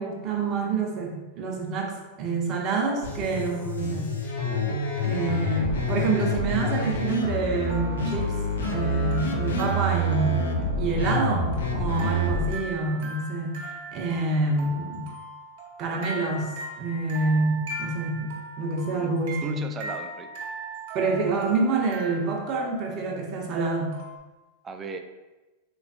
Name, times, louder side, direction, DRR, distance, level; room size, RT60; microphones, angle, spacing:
voice 1, 0.0-4.1 5.0-8.4 8.7-10.5 10.8-13.6 13.9-15.1 15.8-19.6 20.9-24.0, right 3 dB, 40° right, 0 dB, 0.7 m, -27 dB
sound 1, 3.0-12.5, left 1 dB, 85° left, 0.5 m, -27 dB
voice 2, 4.4-5.1 12.0-12.2 18.9-19.1 19.4-20.3 24.6-25.0, right 5 dB, 25° right, 6 dB, 0.4 m, -37 dB
sound 2, 7.6-24.2, right 2 dB, 70° right, 0.9 m, -40 dB
3.2 x 3.0 x 2.7 m, 1.1 s
hypercardioid pair, 105°, 0 cm